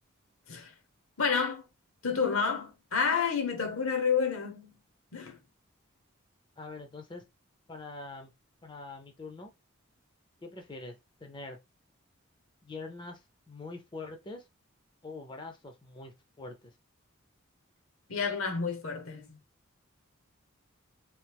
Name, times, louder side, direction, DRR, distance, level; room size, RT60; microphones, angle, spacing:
voice 1, 1.2-1.6 2.0-4.7 5.1-5.4 18.1-19.4, left 5 dB, 70° left, 0.8 m, -29 dB
voice 2, 6.6-7.2 7.7-8.3 8.6-9.5 10.4-11.0 11.2-11.6 12.6-14.4 15.0-16.7, left 3 dB, 20° left, 0.4 m, -44 dB
3.1 x 2.7 x 3.4 m
head